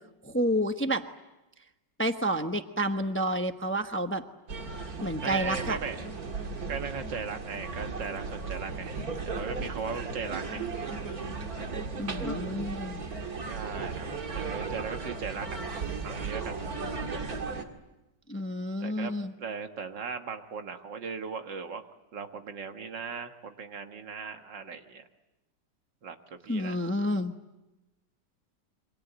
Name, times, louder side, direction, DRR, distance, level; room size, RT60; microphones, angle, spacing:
voice 1, 0.2-1.0 2.0-4.2 5.0-5.8 12.0-13.0 18.3-19.3 26.5-27.3, equal, 10° left, 7 dB, 0.8 m, -29 dB
sound 1, 4.5-17.6, right 4 dB, 55° right, 2.4 m, -36 dB
voice 2, 5.2-6.2 6.7-10.7 13.4-14.1 14.3-15.5 16.0-16.6 18.8-21.8 22.1-25.1 26.0-26.2 26.4-26.8, right 5 dB, 85° right, 6 dB, 2.2 m, -38 dB
28.0 x 24.5 x 8.0 m, 1.0 s
omnidirectional pair, 1.9 m